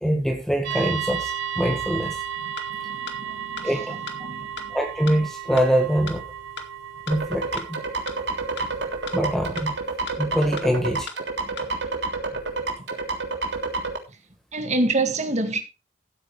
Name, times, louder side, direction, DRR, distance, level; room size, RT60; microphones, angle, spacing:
voice 1, 0.0-2.2 3.6-4.0 4.7-6.2 7.1-7.8 9.1-9.8 10.2-11.1, equal, ahead, 1.8 m, -24 dB
sound 1, 0.6-9.3, right 9 dB, 85° right, 5.2 m, -34 dB
sound 2, 2.6-2.7 3.1-3.2 3.6-3.7 4.1-4.2 4.6-4.7 5.1-5.2 5.6-5.7 6.1-6.2 6.6-6.7 7.1-7.2 7.6-7.7 8.1-8.2 8.6-8.7 9.1-9.2 9.6-9.7 10.1-10.2 10.6-10.7 11.1-11.2 11.6-11.7, left 5 dB, 65° left, 2.3 m, -35 dB
voice 2, 2.8-3.7 4.2-4.5 14.5-15.6, right 2 dB, 40° right, 2.0 m, -26 dB
sound 3, 7.1-14.0, right 3 dB, 70° right, 3.2 m, -29 dB
15.0 x 8.9 x 3.3 m
head